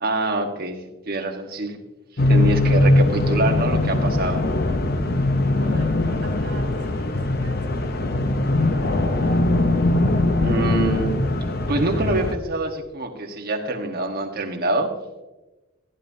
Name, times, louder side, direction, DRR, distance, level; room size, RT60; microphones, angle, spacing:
voice 1, 0.0-1.8 2.3-4.4 10.4-11.2 11.7-14.9, right 2 dB, 45° right, 2 dB, 1.4 m, -25 dB
sound 1, 2.2-12.3, left 2 dB, 50° left, 0.7 m, -21 dB
voice 2, 5.5-7.9 8.6-9.2, equal, 65° right, 0 dB, 3.0 m, -42 dB
14.5 x 11.0 x 2.8 m, 1.1 s
head